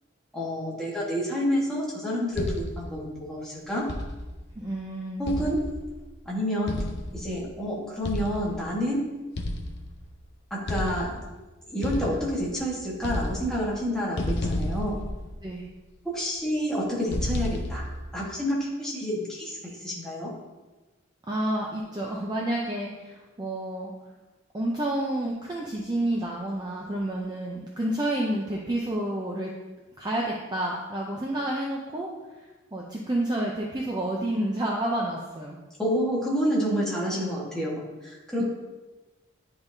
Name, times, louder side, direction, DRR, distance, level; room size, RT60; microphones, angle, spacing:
voice 1, 0.3-3.9 5.2-5.6 6.2-6.8 7.1-9.1 10.5-11.1 11.7-15.0 16.0-17.8 18.1-20.3 35.8-38.4, equal, 5° left, -6 dB, 1.3 m, -29 dB
sound 1, 2.4-3.0 3.9-4.5 5.3-6.1 6.7-7.4 8.0-8.7 9.4-10.1 10.7-11.4 11.8-12.7 13.0-13.8 14.2-15.7 17.1-18.1, left 1 dB, 50° left, 0.6 m, -31 dB
voice 2, 4.6-5.3 15.4-15.7 21.3-23.9 24.5-29.5 30.0-32.1 32.7-35.6 38.4-38.5, right 1 dB, 20° right, -3 dB, 0.5 m, -29 dB
10.0 x 3.5 x 2.7 m, 1.2 s
head